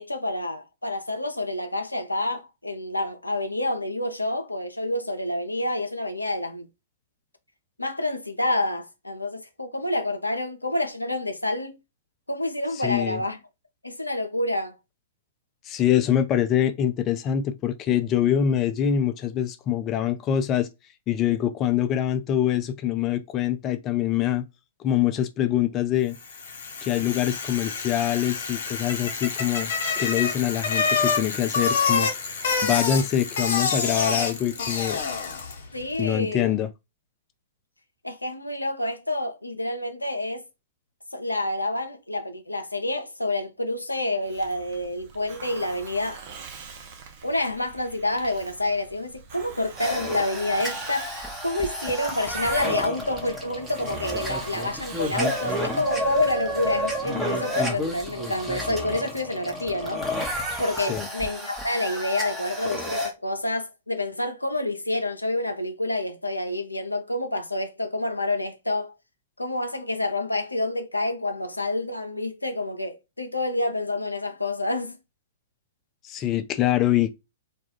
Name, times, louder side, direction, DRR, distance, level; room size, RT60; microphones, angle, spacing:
voice 1, 0.0-6.7 7.8-11.7 12.3-13.4 13.8-14.8 35.7-36.6 38.0-40.4 41.1-46.2 47.2-60.0 60.6-68.9 69.4-75.0, left 1 dB, 85° left, 0.5 m, -28 dB
voice 2, 12.8-13.2 15.7-20.7 21.1-24.5 24.8-26.2 26.8-32.1 32.6-35.0 36.0-36.7 60.8-61.1 76.0-77.1, left 10 dB, 30° left, 0.4 m, -24 dB
Bicycle, 26.2-35.7, left 5 dB, 55° left, 0.8 m, -27 dB
Hiss, 44.2-57.7, right 5 dB, 45° right, 0.5 m, -44 dB
sound 1, 49.8-63.1, equal, 5° right, 0.7 m, -31 dB
2.3 x 2.2 x 3.1 m
figure-of-eight pair, 110°, 0 cm